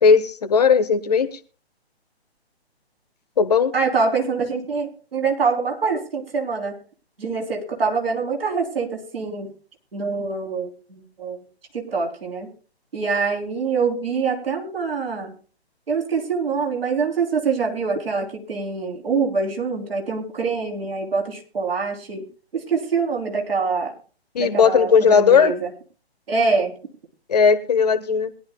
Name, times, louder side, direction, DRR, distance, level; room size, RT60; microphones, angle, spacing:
voice 1, 0.0-1.4 3.4-3.7 24.3-25.5 27.3-28.3, left 6 dB, 40° left, 11 dB, 1.0 m, -17 dB
voice 2, 3.7-6.8 7.2-9.5 9.9-11.4 11.7-12.5 12.9-15.3 15.9-22.2 22.5-23.9 24.4-25.7 26.3-26.7, right 4 dB, 60° right, 1 dB, 3.5 m, -24 dB
22.0 x 11.0 x 2.3 m, 0.38 s
figure-of-eight pair, 135°, 33 cm